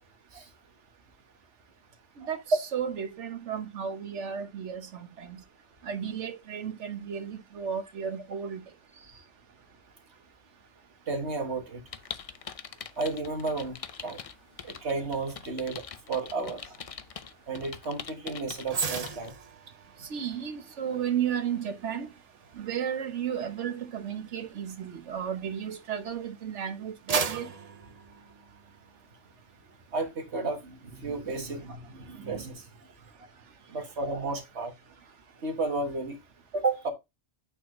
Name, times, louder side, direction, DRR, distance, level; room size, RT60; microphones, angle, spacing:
voice 1, 2.2-5.4 5.8-8.6 20.1-22.1 22.5-27.5, right 8 dB, 90° right, 1.3 m, -33 dB
voice 2, 11.1-11.8 13.0-13.8 14.0-14.2 14.6-15.8 16.1-16.8 17.5-19.3 29.9-32.7 33.7-34.7 35.4-36.2 36.5-36.9, right 3 dB, 70° right, 1.7 m, -32 dB
sound 1, 11.9-19.3, left 7 dB, 55° left, 0.4 m, -43 dB
sound 2, 18.7-26.1 26.6-28.9 29.3-29.5, right 6 dB, 40° right, 0.6 m, -38 dB
8.6 x 4.2 x 3.0 m
omnidirectional pair, 1.2 m